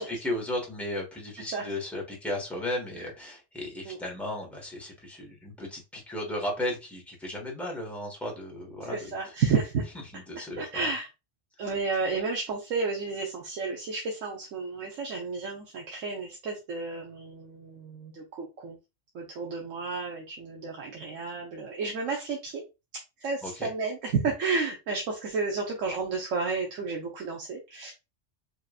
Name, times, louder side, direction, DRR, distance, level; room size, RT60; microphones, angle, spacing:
voice 1, 0.0-9.0 10.1-10.9 23.4-23.7, left 1 dB, ahead, -2 dB, 1.4 m, -35 dB
voice 2, 8.9-9.9 10.5-11.1 11.6-18.8 19.1-22.6 23.2-27.9, right 4 dB, 80° right, 0 dB, 1.2 m, -31 dB
5.0 x 2.9 x 2.4 m, 0.26 s
omnidirectional pair, 1.3 m